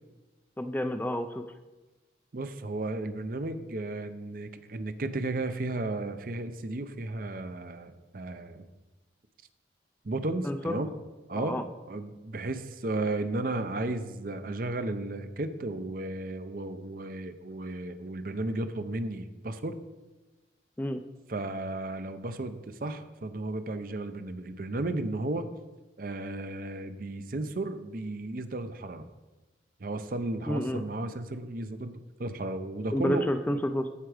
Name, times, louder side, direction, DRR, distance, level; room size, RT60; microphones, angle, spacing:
voice 1, 0.6-1.4 10.5-10.7 11.4-11.6 20.8-21.0 30.5-30.8 32.9-33.9, equal, 10° left, 8 dB, 0.3 m, -29 dB
voice 2, 2.3-8.7 10.0-10.9 11.3-19.8 21.3-25.5 26.0-29.1 29.8-33.6, right 2 dB, 50° right, 10 dB, 0.6 m, -34 dB
14.0 x 4.7 x 4.9 m, 1.1 s
head